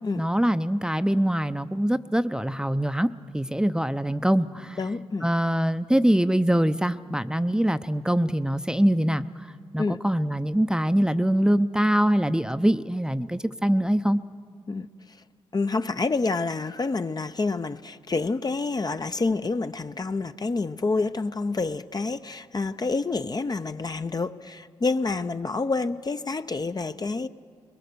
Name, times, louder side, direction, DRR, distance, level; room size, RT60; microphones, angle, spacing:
voice 1, 0.2-4.8 5.2-9.2 9.7-14.2, equal, 5° right, 11 dB, 0.6 m, -23 dB
voice 2, 4.8-5.3 9.8-10.0 14.7-15.2 15.5-27.3, left 3 dB, 35° left, 10 dB, 0.6 m, -28 dB
22.0 x 21.0 x 6.9 m, 2.1 s
supercardioid pair, 45°, 11 cm